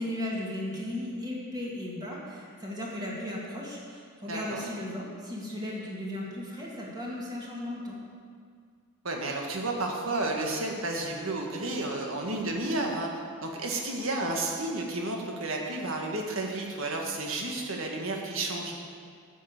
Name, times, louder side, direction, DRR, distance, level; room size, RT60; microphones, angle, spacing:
voice 1, 0.0-8.0, left 1 dB, 20° right, -4 dB, 2.0 m, -36 dB
voice 2, 4.3-4.6 9.0-13.1 13.4-18.8, right 2 dB, 65° right, 1 dB, 1.6 m, -31 dB
9.3 x 6.7 x 8.1 m, 2.1 s
head